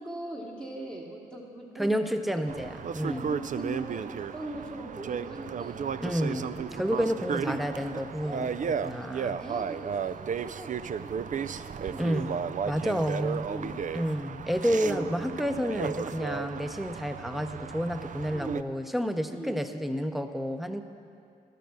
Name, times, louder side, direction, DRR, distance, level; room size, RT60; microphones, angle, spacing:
voice 1, 0.0-2.5 3.0-8.5 9.0-9.1 9.4-12.4 13.5-13.9 14.8-15.1 18.3-18.5 19.3-19.5, right 1 dB, 25° right, -4 dB, 1.4 m, -41 dB
voice 2, 1.8-3.3 6.0-6.5 6.7-9.4 12.0-12.3 12.6-13.5 13.9-20.8, equal, ahead, 8 dB, 0.7 m, -30 dB
sound 1, 2.5-18.6, right 7 dB, 50° right, 0.4 m, -34 dB
12.0 x 6.8 x 6.3 m, 2.4 s
supercardioid pair, 50°, 17 cm